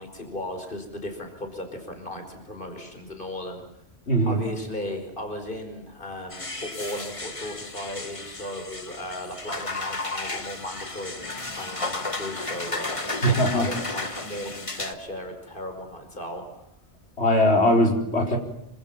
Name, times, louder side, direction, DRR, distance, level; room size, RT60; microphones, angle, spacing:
voice 1, 0.0-3.6 4.3-16.6, left 1 dB, 45° left, 5 dB, 5.3 m, -36 dB
voice 2, 4.1-4.4 13.2-13.7 17.2-18.4, equal, 65° left, 2 dB, 4.9 m, -20 dB
sound 1, 6.3-14.9, left 2 dB, 30° left, 1.6 m, -33 dB
27.0 x 25.5 x 7.3 m, 0.78 s
omnidirectional pair, 1.2 m